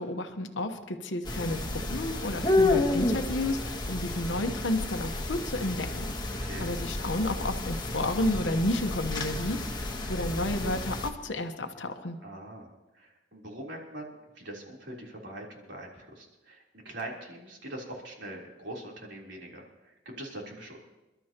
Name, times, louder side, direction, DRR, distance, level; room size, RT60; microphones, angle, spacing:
voice 1, 0.0-12.2, left 1 dB, 85° left, 6 dB, 1.1 m, -31 dB
sound 1, 1.2-11.1, left 2 dB, 25° left, 1.2 m, -31 dB
voice 2, 12.2-20.8, right 1 dB, 75° right, -2 dB, 3.6 m, -43 dB
28.5 x 12.5 x 3.0 m, 1.0 s
head